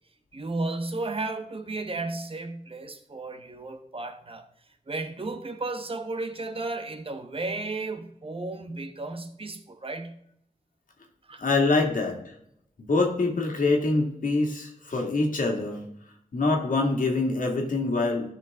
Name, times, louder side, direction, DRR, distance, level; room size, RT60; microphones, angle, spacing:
voice 1, 0.3-4.5 4.9-10.2 11.2-11.4, right 2 dB, 40° right, 1.1 m, -34 dB
voice 2, 11.4-12.3 12.8-15.8 16.3-18.3, left 3 dB, 70° left, 2.0 m, -25 dB
13.0 x 5.8 x 3.6 m
wide cardioid pair, 70°, 14 cm